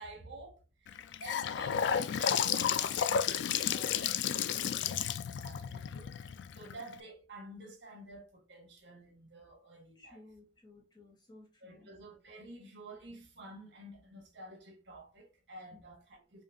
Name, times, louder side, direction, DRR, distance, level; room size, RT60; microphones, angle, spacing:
voice 1, 0.0-10.2 11.6-16.4, right 1 dB, 65° right, 1.5 m, -51 dB
Gurgling / Sink (filling or washing) / Bathtub (filling or washing), 0.9-6.9, left 8 dB, 65° left, 0.3 m, -32 dB
voice 2, 10.0-11.9 15.7-15.8, left 2 dB, 20° left, 1.1 m, -57 dB
5.1 x 2.5 x 2.7 m
head